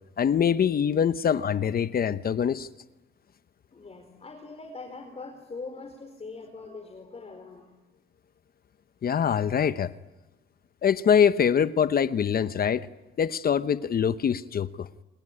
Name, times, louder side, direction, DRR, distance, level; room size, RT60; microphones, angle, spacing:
voice 1, 0.2-2.7 9.0-9.9 10.8-12.9 13.2-14.9, left 8 dB, 50° left, 0.9 m, -24 dB
voice 2, 3.7-7.7, left 3 dB, 30° left, 4.6 m, -42 dB
28.0 x 21.5 x 9.9 m
cardioid pair, 90°, 20 cm